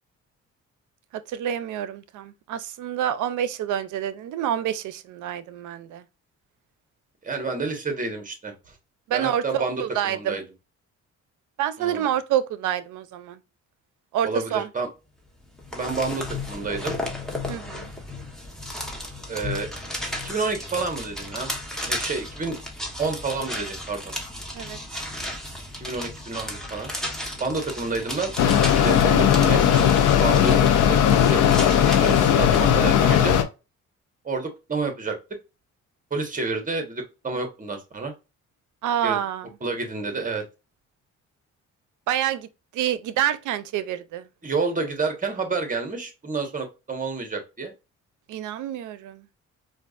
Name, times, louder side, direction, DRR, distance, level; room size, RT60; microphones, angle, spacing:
voice 1, 1.1-6.0 9.1-10.4 11.6-13.4 14.1-14.7 17.5-17.9 24.5-24.8 38.8-39.5 42.1-42.5 42.7-44.3 48.3-49.3, right 10 dB, 80° right, 0.6 m, -27 dB
voice 2, 7.2-8.5 9.1-10.4 11.8-12.1 14.2-14.9 15.7-17.0 19.3-19.7 20.2-21.6 21.9-22.6 23.0-24.1 25.8-26.9 27.4-28.3 28.6-29.9 30.2-30.6 30.9-31.6 32.0-33.4 34.2-35.2 36.1-38.1 39.0-39.2 39.6-40.4 44.4-47.7, right 3 dB, 25° right, 1.4 m, -29 dB
sound 1, 15.4-32.7, left 1 dB, ahead, 1.2 m, -34 dB
Mechanisms, 28.4-33.4, left 9 dB, 85° left, 0.7 m, -18 dB
4.5 x 2.5 x 2.5 m
cardioid pair, 90°, 30 cm